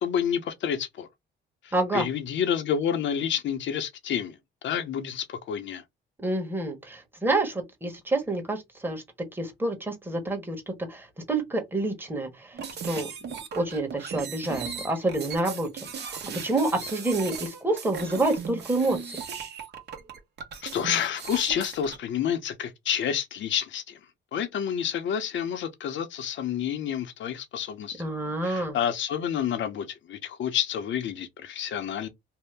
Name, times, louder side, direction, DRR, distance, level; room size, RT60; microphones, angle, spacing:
voice 1, 0.0-1.1 1.6-4.4 4.6-5.8 20.6-24.0 24.3-28.0 28.4-32.1, left 8 dB, 70° left, 0.7 m, -29 dB
voice 2, 1.7-2.1 6.2-12.6 12.8-13.1 13.5-15.7 16.0-19.1 28.0-28.8, right 2 dB, 10° right, 1.1 m, -28 dB
sound 1, 12.5-22.0, right 6 dB, 60° right, 0.9 m, -37 dB
2.7 x 2.1 x 3.3 m
cardioid pair, 90°, 20 cm